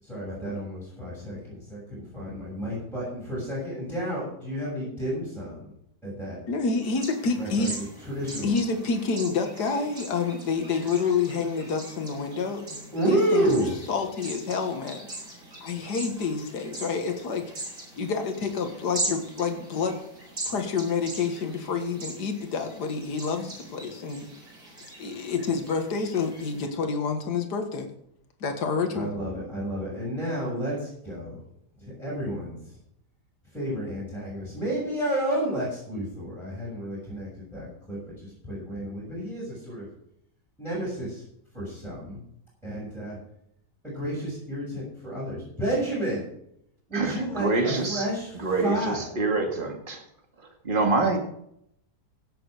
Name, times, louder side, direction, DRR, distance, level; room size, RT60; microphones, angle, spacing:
voice 1, 0.0-5.7 6.0-6.4 7.4-8.5 12.9-13.7 28.9-31.4 32.0-32.6 33.5-39.9 40.6-41.2 41.5-42.2 42.6-43.2 43.8-46.2 46.9-49.2, right 1 dB, ahead, -7 dB, 6.4 m, -31 dB
voice 2, 6.5-7.8 8.4-12.8 13.1-15.1 15.6-17.7 18.0-20.0 20.4-24.3 25.0-27.9 28.4-29.1, left 5 dB, 70° left, 6 dB, 2.2 m, -28 dB
sound 1, 6.8-26.7, right 2 dB, 60° right, 4.8 m, -41 dB
voice 3, 46.9-48.1 48.4-50.0 50.6-51.2, right 3 dB, 30° right, 3 dB, 2.3 m, -26 dB
16.5 x 7.7 x 5.0 m, 0.72 s
omnidirectional pair, 1.8 m